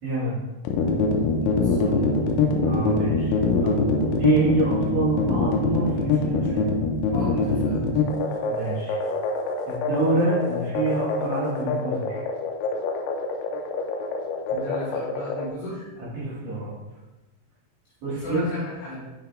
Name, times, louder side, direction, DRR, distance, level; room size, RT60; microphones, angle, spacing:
voice 1, 0.0-0.4 2.6-3.8 4.2-6.7 8.5-9.0 9.7-12.2 16.0-16.7 18.0-18.5, right 2 dB, 70° right, -9 dB, 1.7 m, -27 dB
sound 1, 0.7-15.5, left 4 dB, 90° left, 3.4 m, -24 dB
voice 2, 1.3-2.2 7.1-7.9 14.5-15.9 18.1-19.1, left 1 dB, 65° left, -9 dB, 3.2 m, -35 dB
9.8 x 5.8 x 2.3 m, 1.1 s
omnidirectional pair, 5.9 m